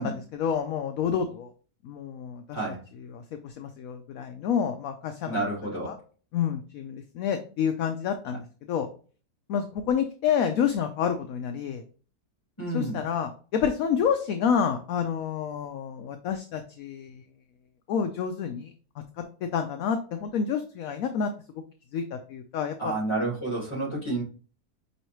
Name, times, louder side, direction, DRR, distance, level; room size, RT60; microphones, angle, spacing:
voice 1, 0.0-1.5 1.8-2.6 3.1-5.4 5.8-6.0 6.3-8.9 9.5-11.8 12.7-17.2 17.9-18.7 19.5-21.3 21.9-22.9, left 7 dB, 70° left, 6 dB, 0.9 m, -28 dB
voice 2, 5.2-6.0 8.3-8.4 12.6-13.0 22.8-24.2, right 2 dB, 15° left, -3 dB, 2.5 m, -30 dB
5.5 x 3.2 x 3.0 m, 0.38 s
omnidirectional pair, 1.8 m